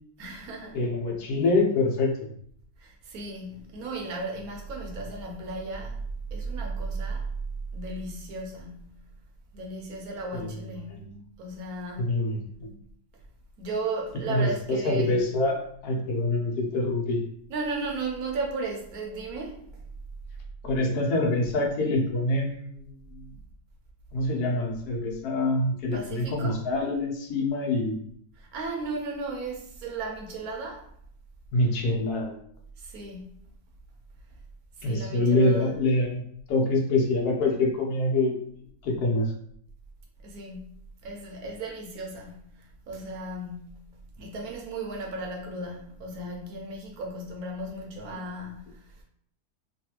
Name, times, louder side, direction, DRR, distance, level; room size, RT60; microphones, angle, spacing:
voice 1, 0.2-0.8 2.8-6.0 6.3-7.3 7.7-9.0 9.5-11.1 11.4-12.1 13.6-15.2 17.5-19.8 25.9-26.6 28.3-30.9 32.8-33.3 34.8-35.7 40.2-40.8 41.0-43.9 44.2-49.0, right 3 dB, 70° right, 1.1 m, -35 dB
voice 2, 0.7-2.3 10.3-10.5 10.9-11.2 12.0-12.8 14.3-17.2 20.6-22.8 23.1-23.2 24.1-28.0 31.5-32.4 34.8-36.2 36.5-38.4 38.8-39.3, left 2 dB, 80° left, 1.2 m, -25 dB
3.2 x 2.3 x 2.9 m
omnidirectional pair, 1.7 m